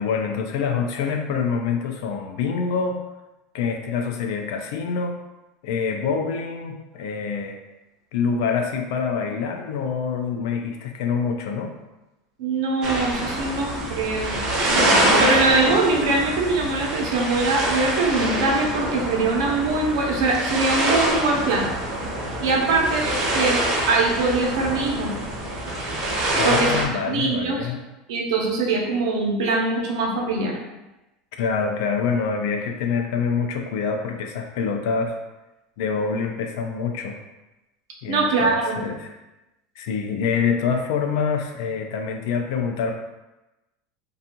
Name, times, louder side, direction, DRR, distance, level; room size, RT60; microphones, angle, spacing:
voice 1, 0.0-3.0 3.5-5.2 5.6-7.6 8.1-11.7 26.4-27.8 31.4-35.2 35.8-37.2 38.0-39.2 39.8-42.9, left 5 dB, 65° left, 4 dB, 0.4 m, -26 dB
voice 2, 12.4-14.4 15.2-21.7 22.4-23.6 23.9-25.1 26.4-26.7 27.1-27.7 28.1-30.5 38.1-38.8, right 3 dB, 85° right, -1 dB, 0.7 m, -22 dB
sound 1, 12.8-26.8, right 1 dB, 30° right, 0.6 m, -25 dB
2.6 x 2.3 x 2.8 m, 1.0 s
supercardioid pair, 165°, 2 cm